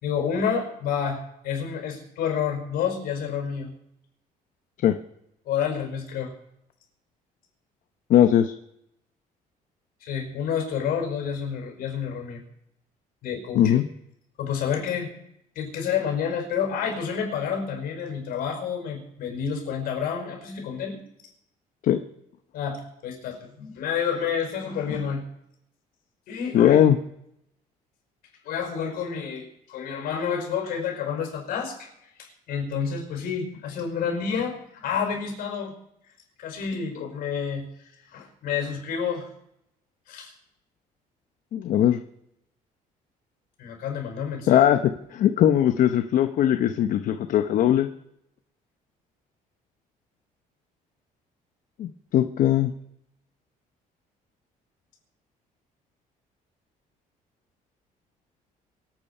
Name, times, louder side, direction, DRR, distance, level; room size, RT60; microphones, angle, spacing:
voice 1, 0.0-3.7 5.5-6.3 10.0-12.4 13.2-13.8 14.4-15.1 15.6-21.0 22.5-25.2 26.3-26.8 28.4-31.9 32.2-35.7 36.4-37.7 38.1-39.3 40.1-40.3 43.6-44.6, left 7 dB, 80° left, 3 dB, 5.2 m, -29 dB
voice 2, 8.1-8.5 13.5-13.8 21.8-22.0 26.5-27.0 41.5-42.0 44.5-44.8 45.1-47.9 51.8-52.7, left 11 dB, 60° left, 8 dB, 0.8 m, -19 dB
24.5 x 8.9 x 5.5 m, 0.78 s
cardioid pair, 140°, 15 cm